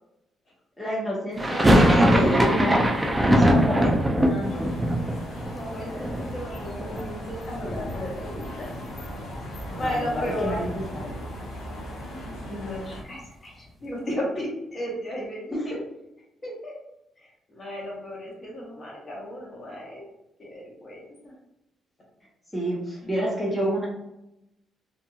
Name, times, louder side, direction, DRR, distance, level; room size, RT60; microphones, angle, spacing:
voice 1, 0.8-2.7 3.2-4.8 9.7-11.1 15.5-15.6 22.5-23.9, right 1 dB, 10° left, -6 dB, 0.9 m, -29 dB
sound 1, 1.4-7.3 7.6-8.4 8.7-8.8 9.1-11.2, equal, 15° right, 0.4 m, -22 dB
sound 2, 4.4-13.0, equal, 85° left, 0.6 m, -38 dB
voice 2, 5.4-8.8 9.7-10.6 12.1-15.8 16.4-16.7 17.2-20.0 20.4-21.3 23.0-23.2, equal, 35° left, -3 dB, 1.1 m, -35 dB
2.8 x 2.6 x 2.3 m, 0.87 s
cardioid pair, 90°, 0 cm